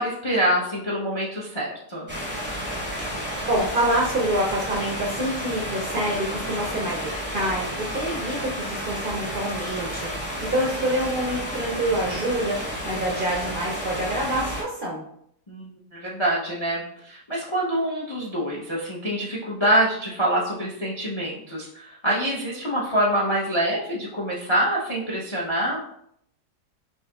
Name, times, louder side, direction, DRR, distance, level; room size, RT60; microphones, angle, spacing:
voice 1, 0.0-2.1 15.5-25.8, right 1 dB, 40° left, -4 dB, 0.4 m, -25 dB
sound 1, 2.1-14.6, equal, 10° right, 0.6 m, -31 dB
voice 2, 3.5-15.0, right 1 dB, 65° right, -3 dB, 0.5 m, -27 dB
5.5 x 2.8 x 2.3 m, 0.71 s
omnidirectional pair, 1.8 m